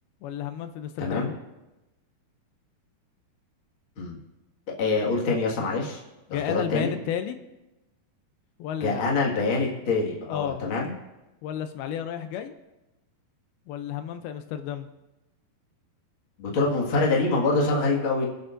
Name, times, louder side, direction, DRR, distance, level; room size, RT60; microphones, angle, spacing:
voice 1, 0.2-1.3 6.3-7.4 8.6-9.2 10.3-10.6 11.4-12.6 13.7-14.9, left 9 dB, 80° left, 8 dB, 2.5 m, -32 dB
voice 2, 1.0-1.3 4.0-4.2 4.8-6.0 6.5-6.9 8.8-10.9 16.4-18.2, left 3 dB, 40° left, -2 dB, 2.1 m, -25 dB
26.5 x 9.2 x 2.6 m, 1.0 s
omnidirectional pair, 4.4 m